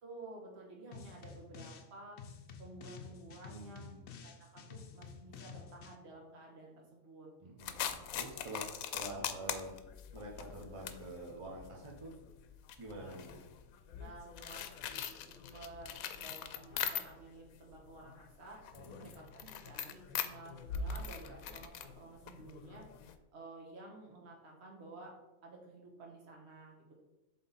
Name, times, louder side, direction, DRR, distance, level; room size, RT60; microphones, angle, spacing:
voice 1, 0.0-2.2 2.6-3.9 4.2-7.3 7.6-7.9 14.0-18.6 19.0-22.8 23.3-25.1 25.4-26.9, right 3 dB, 50° right, -2 dB, 1.5 m, -52 dB
sound 1, 0.9-1.9 2.2-6.0, left 6 dB, 60° left, 0.8 m, -51 dB
voice 2, 3.5-4.0 7.4-9.7 10.1-12.1 12.8-13.4 18.7-19.1, right 2 dB, 30° right, -3 dB, 0.8 m, -47 dB
sound 2, 7.6-17.4 17.7-23.1, left 8 dB, 85° left, 1.0 m, -42 dB
7.5 x 3.8 x 4.1 m, 1.0 s
omnidirectional pair, 1.4 m